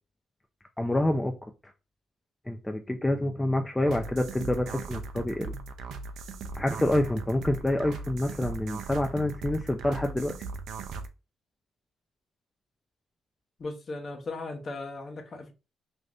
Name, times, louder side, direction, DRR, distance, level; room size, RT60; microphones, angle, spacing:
voice 1, 0.8-1.3 2.5-5.5 6.6-10.3, left 1 dB, 10° left, 0.4 m, -27 dB
sound 1, 3.9-11.1, right 4 dB, 75° right, 0.4 m, -39 dB
voice 2, 13.6-15.5, left 2 dB, 40° left, 0.7 m, -37 dB
2.6 x 2.4 x 3.3 m
cardioid pair, 90°, 0 cm